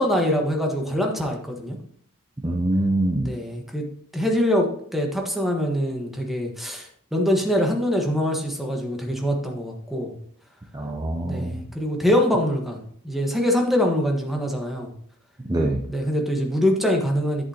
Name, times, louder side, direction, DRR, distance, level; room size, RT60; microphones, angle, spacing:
voice 1, 0.0-1.8 3.2-3.8 4.1-10.1 11.2-14.9 15.9-17.5, equal, ahead, 1 dB, 1.3 m, -24 dB
voice 2, 2.4-3.3 10.7-11.6 15.5-15.9, right 1 dB, 20° right, 1 dB, 0.6 m, -24 dB
10.5 x 8.2 x 2.9 m, 0.62 s
head